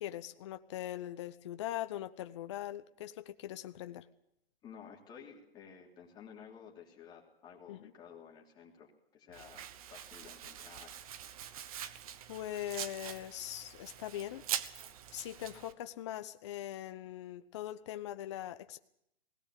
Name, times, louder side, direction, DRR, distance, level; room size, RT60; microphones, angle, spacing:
voice 1, 0.0-4.0 7.7-7.9 12.3-14.4 15.1-18.8, left 12 dB, 30° left, 10 dB, 0.7 m, -41 dB
voice 2, 4.6-11.0, left 7 dB, 15° left, -1 dB, 3.1 m, -53 dB
Domestic sounds home sounds, 9.3-15.7, right 9 dB, 35° right, 1.2 m, -44 dB
20.0 x 18.0 x 8.3 m, 0.76 s
hypercardioid pair, 155°, 31 cm